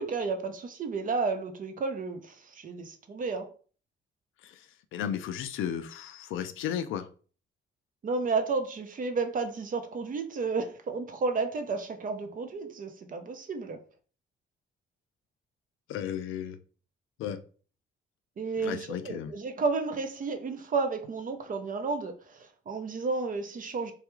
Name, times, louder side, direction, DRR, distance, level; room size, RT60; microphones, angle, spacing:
voice 1, 0.0-3.5 8.0-13.8 18.4-23.9, right 4 dB, 45° right, 0.6 m, -32 dB
voice 2, 4.9-7.1 15.9-16.6 17.2-17.4 18.6-19.3, left 9 dB, 85° left, 0.4 m, -34 dB
3.3 x 2.3 x 3.0 m
cardioid pair, 90°, 20 cm